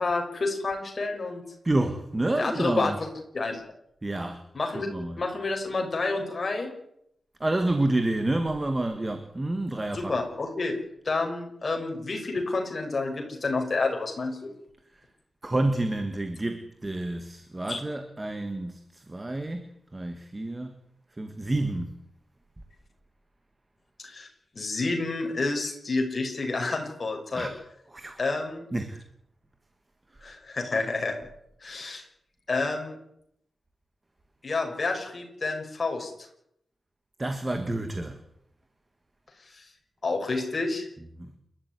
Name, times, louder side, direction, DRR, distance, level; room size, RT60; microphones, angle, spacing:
voice 1, 0.0-1.4 2.4-3.1 3.3-3.6 4.5-4.9 5.2-6.7 9.9-10.8 11.0-14.5 17.7-17.8 24.0-24.3 24.6-27.5 28.2-28.7 30.2-31.2 31.6-32.0 32.5-33.0 34.4-36.1 39.5-39.7 40.0-40.9, left 3 dB, 30° left, 5.8 m, -29 dB
voice 2, 1.6-3.0 4.0-4.4 4.7-5.2 7.4-10.1 14.9-15.0 15.4-20.8 21.2-22.0 27.3-27.6 27.9-28.2 28.7-29.0 30.1-30.2 37.2-38.2 41.2-41.3, right 2 dB, 15° right, 1.7 m, -29 dB
29.0 x 13.0 x 9.7 m
wide cardioid pair, 160°, 0 cm